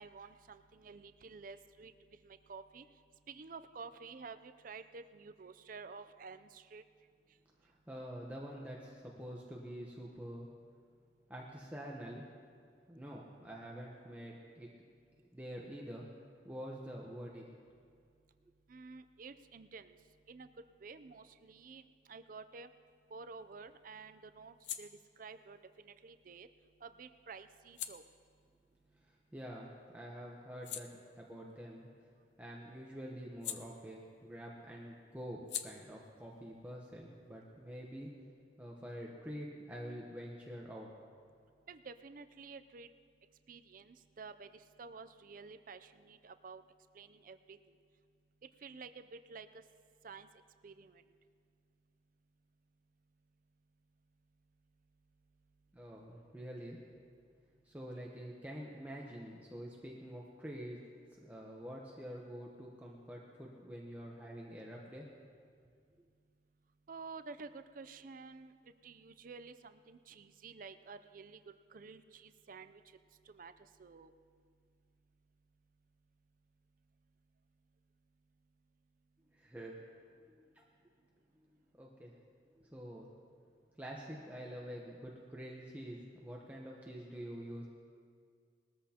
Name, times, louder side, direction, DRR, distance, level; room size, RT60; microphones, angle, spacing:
voice 1, 0.0-1.9 2.2-2.8 3.3-6.8 18.7-19.9 20.3-20.5 20.8-22.7 23.1-24.9 25.2-26.5 26.8-28.0 41.7-42.9 43.5-46.6 46.9-47.8 48.6-49.6 50.0-50.3 50.6-51.1 66.9-68.5 68.8-71.4 71.7-72.8 73.3-73.5 73.8-74.1, right 4 dB, 45° right, 10 dB, 0.5 m, -51 dB
voice 2, 7.6-10.5 11.3-12.2 12.9-14.7 15.3-16.1 16.4-17.4 29.0-30.9 31.1-31.9 32.4-38.1 38.6-40.9 55.7-56.8 57.6-60.8 61.2-65.1 79.3-79.8 80.3-80.6 81.7-82.2 82.6-83.1 83.8-87.7, equal, 10° right, -3 dB, 0.9 m, -47 dB
sound 1, 22.9-29.7 30.1-34.4 34.6-38.0, left 10 dB, 65° left, 0.6 m, -50 dB
20.5 x 13.5 x 2.9 m, 2.1 s
head